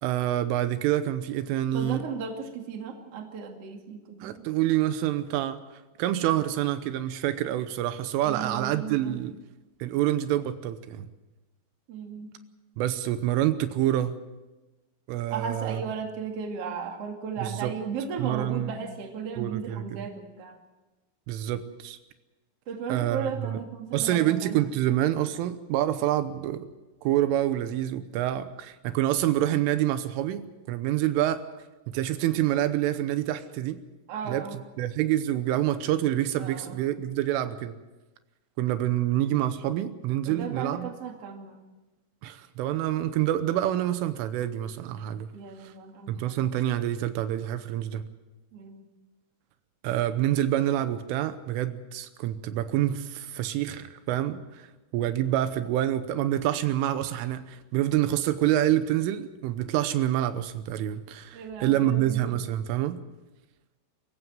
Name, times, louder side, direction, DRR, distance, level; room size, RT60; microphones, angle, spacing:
voice 1, 0.0-2.0 4.2-5.6 6.0-9.4 9.8-11.1 12.8-14.2 15.1-15.8 17.4-17.7 18.2-18.7 19.4-20.0 21.3-22.0 22.9-23.6 23.9-26.7 27.0-31.4 31.9-33.8 34.3-37.8 38.6-40.9 42.2-45.3 45.6-45.7 46.1-48.0 49.8-54.7 54.9-63.0, right 13 dB, 85° right, 11 dB, 3.4 m, -27 dB
voice 2, 1.7-4.5 8.2-9.2 11.9-12.3 15.3-20.6 22.7-24.6 34.1-34.6 36.4-36.8 40.3-41.6 45.3-46.2 48.5-48.8 61.3-62.2, right 6 dB, 40° right, 3 dB, 2.4 m, -36 dB
24.5 x 15.0 x 7.8 m, 1.1 s
omnidirectional pair, 5.7 m